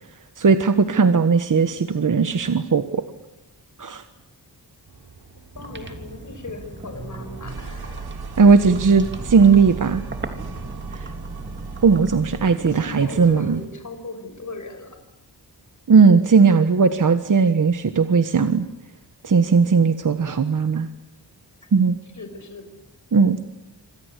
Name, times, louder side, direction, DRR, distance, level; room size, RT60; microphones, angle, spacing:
voice 1, 0.4-3.0 3.8-4.0 8.4-10.0 10.9-11.1 11.8-13.6 15.9-18.6 19.2-20.9 21.7-21.9 23.1-23.4, right 5 dB, 50° right, 10 dB, 1.4 m, -17 dB
sound 1, 4.9-12.7, right 4 dB, 70° right, 3.3 m, -37 dB
sound 2, 5.5-13.7, right 2 dB, 30° right, 3.3 m, -38 dB
voice 2, 5.6-8.1 12.4-15.0 22.1-22.7, left 3 dB, 45° left, 7 dB, 5.8 m, -38 dB
27.0 x 26.0 x 8.3 m, 0.88 s
wide cardioid pair, 120°, 40 cm